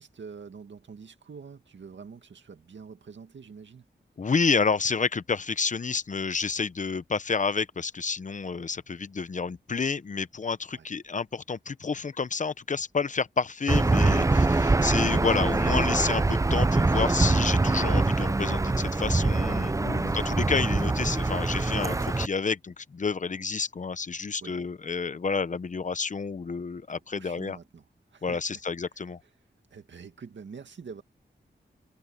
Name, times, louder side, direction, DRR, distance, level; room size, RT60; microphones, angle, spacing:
voice 1, 0.0-3.9 10.7-10.9 24.4-24.6 27.1-27.8 28.1-28.6 29.7-31.0, right 5 dB, 85° right, 2.2 m, -45 dB
voice 2, 4.2-27.6 28.2-29.2, left 5 dB, 40° left, 0.7 m, -29 dB
Aircraft / Engine, 13.7-22.3, right 3 dB, 15° right, 0.5 m, -24 dB
wide cardioid pair, 125°, 19 cm